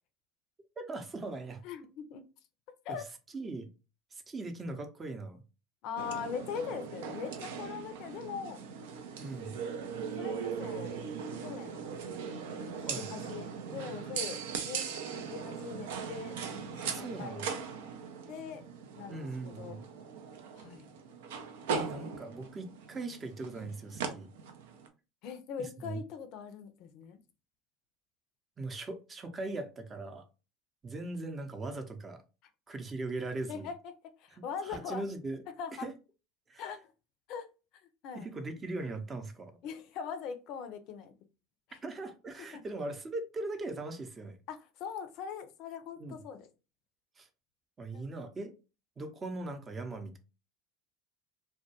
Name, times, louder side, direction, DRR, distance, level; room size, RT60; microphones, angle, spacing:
voice 1, 0.8-1.6 2.9-3.0 3.3-3.7 4.1-5.4 9.2-9.6 12.8-13.1 16.8-17.5 19.1-19.8 21.8-24.3 25.6-26.0 28.6-30.2 30.8-32.2 32.7-33.7 34.6-35.4 35.7-35.9 36.5-36.7 38.1-39.6 41.8-44.4 46.0-46.2 47.2-47.3 47.8-48.5 49.0-50.2, right 2 dB, 25° right, 0.6 m, -40 dB
voice 2, 1.6-2.2 2.8-3.1 5.8-8.6 10.2-11.0 11.4-11.8 13.0-14.9 15.3-16.4 16.8-17.6 18.3-18.6 19.0-19.8 20.5-20.9 25.2-27.2 33.5-33.8 34.2-35.0 35.6-35.9 36.6-36.9 37.3-37.5 38.0-38.3 39.6-41.1 41.7-41.8 42.5-42.6 44.5-46.5 47.9-48.1, left 7 dB, 60° left, 0.4 m, -41 dB
sound 1, 6.0-24.9, right 6 dB, 75° right, 0.4 m, -39 dB
2.2 x 2.2 x 2.8 m
hypercardioid pair, 85°, 0 cm